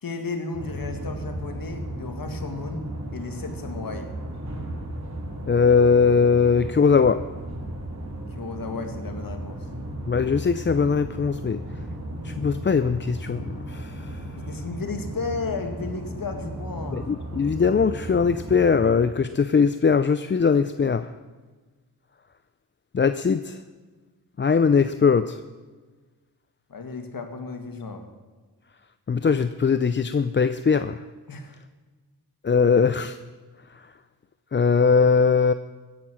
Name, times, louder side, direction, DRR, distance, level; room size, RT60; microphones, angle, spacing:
voice 1, 0.0-4.1 8.3-9.7 14.5-17.0 26.7-28.0 31.3-31.6, left 3 dB, 60° left, 5 dB, 2.3 m, -33 dB
sound 1, 0.5-19.0, right 1 dB, 45° right, 4.3 m, -35 dB
voice 2, 5.5-7.2 10.1-11.6 12.2-14.1 16.9-21.1 22.9-23.6 24.4-25.4 29.1-31.0 32.4-33.2 34.5-35.5, left 5 dB, 30° left, 11 dB, 0.5 m, -20 dB
16.0 x 10.5 x 6.4 m, 1.4 s
cardioid pair, 75°, 39 cm